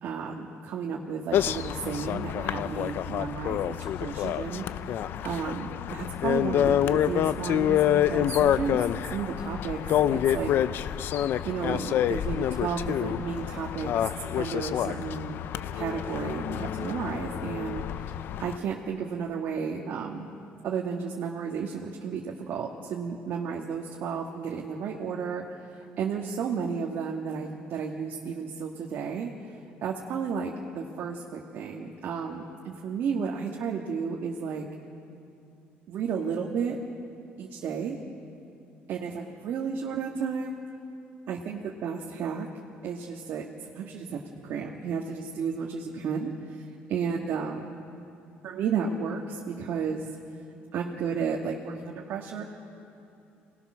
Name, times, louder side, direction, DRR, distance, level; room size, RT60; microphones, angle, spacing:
voice 1, 0.0-4.6 5.2-9.8 10.1-10.5 11.4-14.1 14.4-15.4 15.7-18.1 18.4-20.3 20.6-25.4 26.0-29.3 29.8-34.7 35.9-36.8 37.4-38.0 38.9-40.6 41.3-42.5 42.8-46.6 46.9-47.7 48.4-50.1 50.7-52.4, right 6 dB, 60° right, -1 dB, 1.8 m, -33 dB
sound 1, 1.3-18.6, left 10 dB, 60° left, 0.6 m, -27 dB
27.0 x 19.0 x 6.3 m, 2.7 s
cardioid pair, 135°, 4 cm